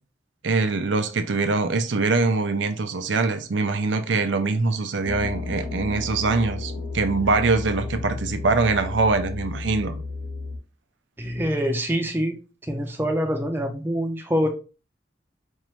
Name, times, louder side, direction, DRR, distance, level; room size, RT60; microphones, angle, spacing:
voice 1, 0.4-10.0, right 3 dB, 85° right, 0.6 m, -23 dB
sound 1, 5.0-10.6, left 3 dB, 85° left, 1.0 m, -33 dB
voice 2, 11.2-12.4 12.7-14.5, equal, 10° right, 0.6 m, -25 dB
4.5 x 2.5 x 3.0 m
head